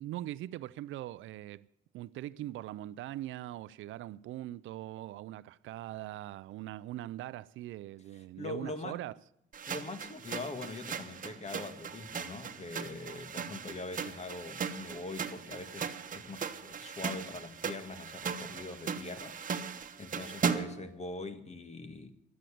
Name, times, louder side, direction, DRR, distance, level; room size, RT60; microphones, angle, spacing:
voice 1, 0.0-1.7 1.9-9.1, right 14 dB, 80° right, 0.4 m, -41 dB
voice 2, 8.1-9.0 9.7-19.4 19.6-22.1, left 3 dB, 35° left, 1.7 m, -43 dB
sound 1, 9.5-20.9, right 6 dB, 45° right, 1.2 m, -38 dB
12.0 x 9.1 x 10.0 m
cardioid pair, 90°, 20 cm